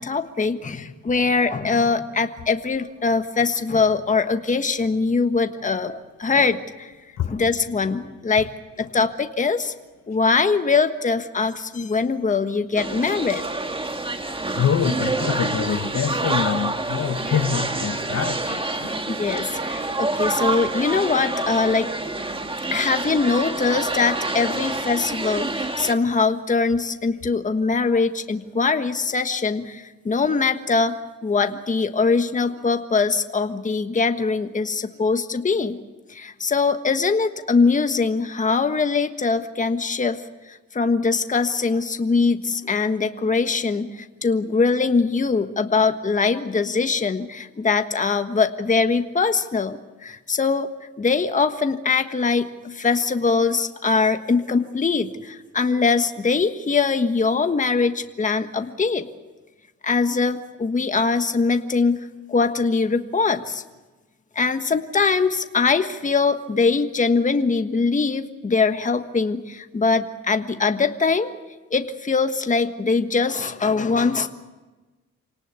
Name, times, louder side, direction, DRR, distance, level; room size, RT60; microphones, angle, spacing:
voice 1, 0.0-6.9 7.2-8.5 8.8-9.7 10.1-13.4 19.1-21.9 22.7-31.0 31.2-35.8 36.1-40.2 40.7-50.7 51.0-59.1 59.8-62.0 62.3-63.6 64.3-71.3 71.7-74.3, left 4 dB, 25° left, 7 dB, 1.4 m, -22 dB
sound 1, 12.8-25.9, right 2 dB, 20° right, 1.8 m, -27 dB
voice 2, 14.6-18.9, left 8 dB, 60° left, 9 dB, 1.5 m, -25 dB
27.0 x 18.5 x 8.2 m, 1.2 s
cardioid pair, 90°, 30 cm